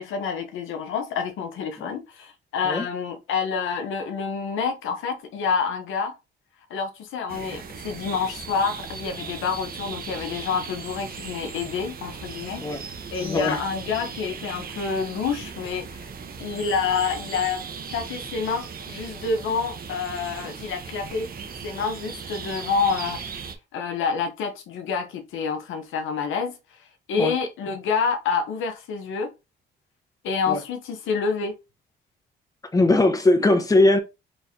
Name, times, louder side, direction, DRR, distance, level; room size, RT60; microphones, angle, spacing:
voice 1, 0.0-6.2 6.7-16.1 16.4-17.6 17.9-21.3 21.6-23.2 23.7-29.3 30.2-31.6, left 5 dB, 80° left, 0.9 m, -28 dB
sound 1, 7.3-23.5, right 6 dB, 50° right, 0.9 m, -38 dB
voice 2, 13.2-13.6 27.2-27.3 30.5-30.6 32.7-34.0, left 2 dB, 15° left, 1.0 m, -19 dB
4.4 x 3.3 x 2.7 m
cardioid pair, 90°, 20 cm